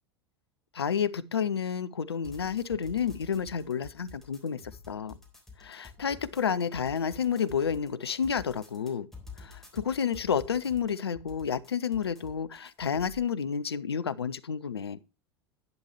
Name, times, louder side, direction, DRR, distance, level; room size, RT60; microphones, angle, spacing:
voice 1, 0.7-5.2 5.6-9.1 9.4-15.0, left 7 dB, 75° left, 0.6 m, -30 dB
sound 1, 2.2-13.2, left 4 dB, ahead, 3.8 m, -50 dB
10.5 x 9.8 x 3.1 m
figure-of-eight pair, 80°, 14 cm